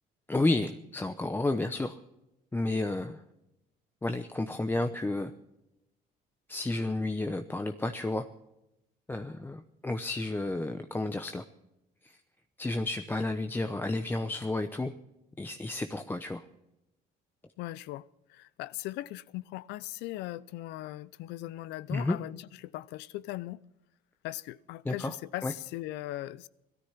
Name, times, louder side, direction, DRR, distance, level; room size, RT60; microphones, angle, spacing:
voice 1, 0.3-2.0 2.5-3.2 4.0-5.3 6.5-8.3 9.1-11.4 12.0-12.2 12.6-14.9 15.4-16.4 21.9-22.2 24.8-25.1 25.4-25.5, left 2 dB, 10° left, 0.8 m, -31 dB
voice 2, 17.6-18.0 18.3-23.6 24.2-26.5, left 16 dB, 90° left, 0.6 m, -39 dB
18.5 x 13.0 x 5.8 m
cardioid pair, 110°, 17 cm